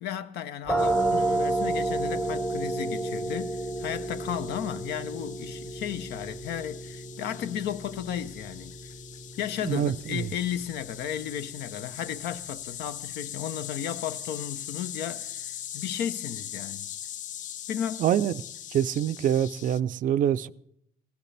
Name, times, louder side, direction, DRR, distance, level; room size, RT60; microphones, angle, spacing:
voice 1, 0.0-8.8 9.4-16.9 17.7-18.0, left 10 dB, 75° left, 0.7 m, -34 dB
sound 1, 0.7-12.2, right 2 dB, 5° left, 0.9 m, -32 dB
sound 2, 0.8-19.8, left 10 dB, 50° left, 0.4 m, -42 dB
voice 2, 9.6-10.3 18.0-18.3 18.7-20.5, right 10 dB, 55° right, 0.4 m, -25 dB
17.0 x 13.5 x 3.4 m
cardioid pair, 110°, 17 cm